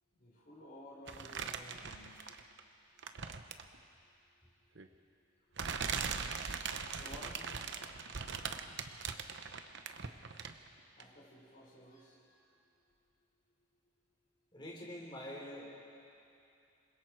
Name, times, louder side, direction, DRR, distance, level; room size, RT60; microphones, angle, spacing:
voice 1, 0.2-2.3 6.9-7.8 10.9-12.5, left 1 dB, 45° left, -7 dB, 4.9 m, -54 dB
sound 1, 1.1-2.6 3.0-3.8 4.8-4.9 5.6-10.7 11.0-11.1, right 6 dB, 60° right, 0.9 m, -40 dB
voice 2, 14.5-15.7, left 1 dB, 25° left, -2 dB, 3.6 m, -45 dB
27.5 x 21.5 x 4.6 m, 2.7 s
head